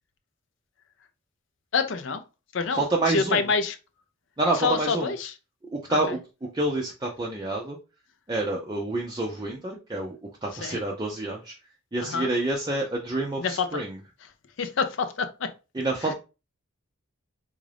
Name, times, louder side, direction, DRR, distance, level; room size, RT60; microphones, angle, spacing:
voice 1, 1.7-2.2 2.5-3.8 4.5-5.3 5.9-6.0 10.6-10.8 12.0-12.3 13.4-13.7 14.6-15.5 16.0-16.1, left 5 dB, 55° left, 0.4 m, -27 dB
voice 2, 2.7-3.5 4.4-5.1 5.7-6.2 6.5-7.8 8.3-10.2 10.4-11.5 11.9-14.0 15.7-16.1, right 2 dB, 20° right, 0.4 m, -28 dB
3.6 x 2.5 x 3.2 m
head